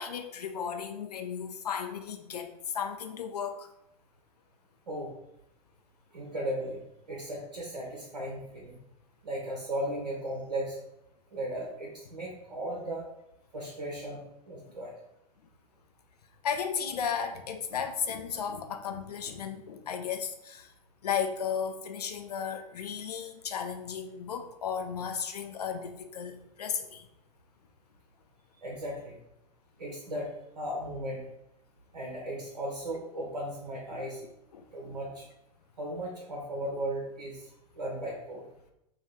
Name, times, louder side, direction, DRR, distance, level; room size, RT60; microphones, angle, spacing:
voice 1, 0.0-3.7 16.4-20.7 21.0-27.1 33.9-34.0 34.5-35.0, left 7 dB, 70° left, 6 dB, 0.4 m, -35 dB
voice 2, 6.1-6.8 7.1-8.8 9.2-10.8 11.3-13.0 13.5-14.9 28.6-29.2 29.8-31.2 31.9-34.2 34.7-35.3 35.8-37.5 37.7-38.5, right 1 dB, 75° right, -2 dB, 0.7 m, -36 dB
2.6 x 2.3 x 3.5 m, 0.82 s
figure-of-eight pair, 95°, 20 cm